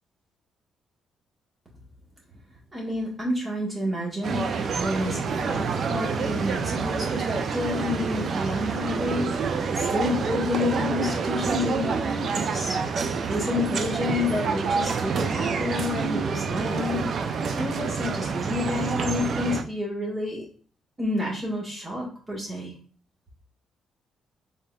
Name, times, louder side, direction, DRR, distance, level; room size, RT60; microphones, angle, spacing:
voice 1, 2.7-20.5 21.0-22.7, left 2 dB, 25° right, -4 dB, 1.6 m, -30 dB
sound 1, 4.2-19.6, right 5 dB, 55° right, 0.4 m, -27 dB
3.9 x 3.7 x 2.4 m, 0.40 s
cardioid pair, 90°, 0 cm